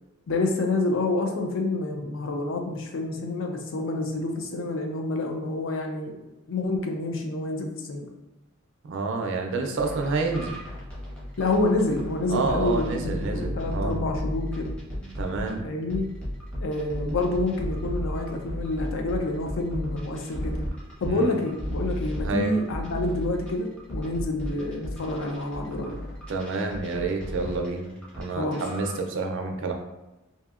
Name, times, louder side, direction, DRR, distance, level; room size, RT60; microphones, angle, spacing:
voice 1, 0.3-6.2 6.5-8.1 11.4-14.7 15.6-16.1 16.6-20.6 21.0-26.0 28.3-28.6, left 2 dB, 65° left, 3 dB, 0.4 m, -28 dB
voice 2, 8.8-10.7 12.3-14.0 15.2-15.7 21.0-21.4 22.2-22.6 26.3-29.7, right 3 dB, 60° right, 3 dB, 0.4 m, -29 dB
sound 1, 9.8-15.5 15.9-28.2 28.5-29.0, equal, 5° left, 0.6 m, -34 dB
2.7 x 2.6 x 2.4 m, 1.0 s
head